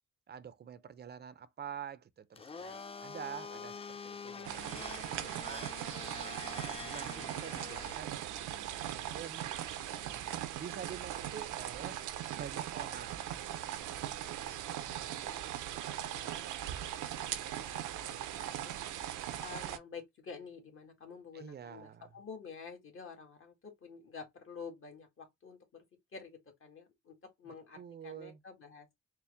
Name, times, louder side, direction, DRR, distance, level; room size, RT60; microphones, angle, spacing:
voice 1, 0.3-4.9 5.2-5.7 6.1-9.5 9.9-12.0 12.3-13.5 13.8-14.3 21.3-22.1 27.5-28.4, right 8 dB, 35° right, 0.5 m, -48 dB
Domestic sounds home sounds, 2.3-7.9, left 5 dB, 20° left, 0.3 m, -46 dB
sound 1, 4.4-19.8, right 11 dB, 85° right, 0.6 m, -40 dB
voice 2, 14.9-17.3 17.6-18.7 19.3-25.8 26.1-28.9, left 5 dB, 45° left, 1.7 m, -50 dB
4.4 x 2.1 x 3.3 m
cardioid pair, 90°, 30 cm